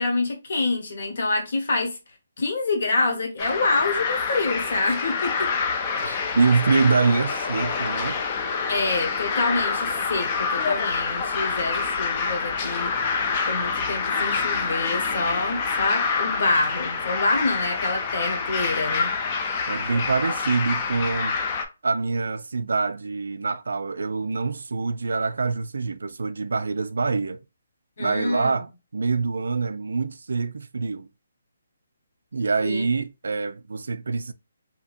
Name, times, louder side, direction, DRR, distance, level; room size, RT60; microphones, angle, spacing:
voice 1, 0.0-2.0 2.4-5.5 8.7-13.2 13.5-19.1 28.0-28.6 32.6-32.9, left 3 dB, 50° left, 1.0 m, -26 dB
sound 1, 3.4-21.7, left 5 dB, 20° left, 0.4 m, -27 dB
voice 2, 6.0-8.2 19.7-21.4 21.8-27.4 28.0-31.1 32.3-34.3, right 4 dB, 75° right, 0.3 m, -25 dB
2.7 x 2.5 x 2.5 m
hypercardioid pair, 175°, 0 cm